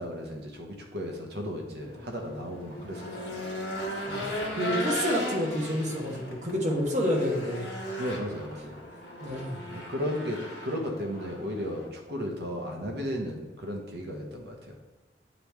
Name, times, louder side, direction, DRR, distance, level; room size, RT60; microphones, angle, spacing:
voice 1, 0.0-3.5 8.0-8.8 9.7-14.7, equal, 65° right, 1 dB, 1.0 m, -35 dB
Race car auto racing / Engine, 1.8-11.9, left 1 dB, 65° left, 1.4 m, -37 dB
voice 2, 4.1-7.7 9.2-9.6, equal, 40° right, -1 dB, 1.2 m, -29 dB
9.1 x 3.1 x 3.4 m, 1.3 s
head